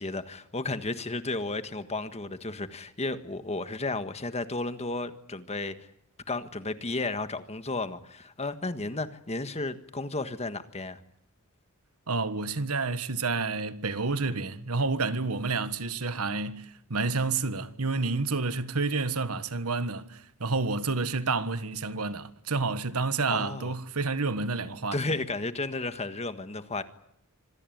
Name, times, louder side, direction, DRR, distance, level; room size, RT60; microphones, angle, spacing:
voice 1, 0.0-5.8 6.3-11.0 23.3-23.7 24.9-26.8, left 2 dB, 30° left, 1.6 m, -33 dB
voice 2, 12.1-25.0, right 3 dB, 75° right, 1.5 m, -29 dB
26.0 x 19.0 x 9.3 m
head